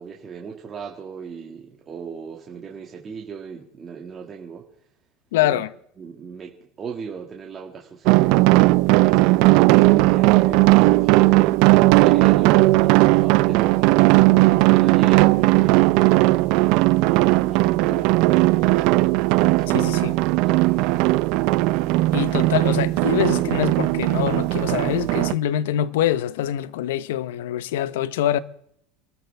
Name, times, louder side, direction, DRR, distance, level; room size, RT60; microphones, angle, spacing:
voice 1, 0.0-4.6 5.4-5.6 6.0-11.4 11.8-14.3 14.6-19.9 20.2-21.4, right 6 dB, 25° right, 2.0 m, -37 dB
voice 2, 5.3-5.7 19.7-20.2 22.1-28.4, left 12 dB, 85° left, 0.9 m, -24 dB
sound 1, 8.1-25.3, right 20 dB, 60° right, 0.5 m, -17 dB
27.5 x 13.5 x 3.5 m
supercardioid pair, 140°, 0 cm